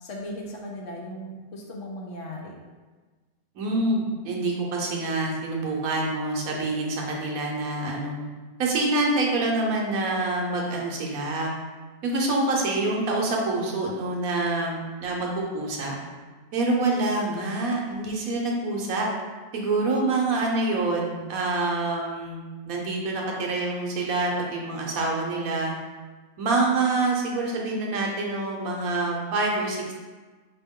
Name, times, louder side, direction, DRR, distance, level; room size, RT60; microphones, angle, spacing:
voice 1, 0.0-2.5, left 1 dB, 65° left, -1 dB, 1.0 m, -37 dB
voice 2, 3.5-8.1 8.6-11.5 12.0-16.0 16.5-19.1 19.5-25.7 26.4-29.9, right 2 dB, 75° right, -1 dB, 1.2 m, -26 dB
4.4 x 2.9 x 3.6 m, 1.4 s
omnidirectional pair, 1.5 m